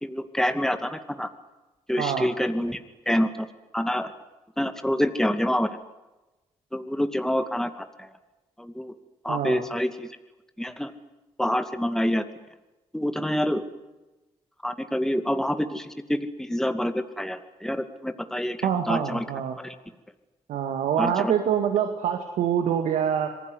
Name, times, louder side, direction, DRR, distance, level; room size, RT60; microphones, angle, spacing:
voice 1, 0.0-1.3 1.9-2.8 3.1-3.3 3.7-4.1 4.6-5.7 6.7-8.1 8.6-8.9 9.2-10.1 10.6-10.9 11.4-12.2 12.9-13.7 14.6-19.2 19.6-19.7 21.0-21.3, equal, 5° left, 8 dB, 2.4 m, -27 dB
voice 2, 2.0-2.3 9.3-9.6 18.6-19.6 20.5-23.3, right 8 dB, 85° right, 5 dB, 2.1 m, -25 dB
27.0 x 19.0 x 9.7 m, 1.1 s
supercardioid pair, 55°, 12 cm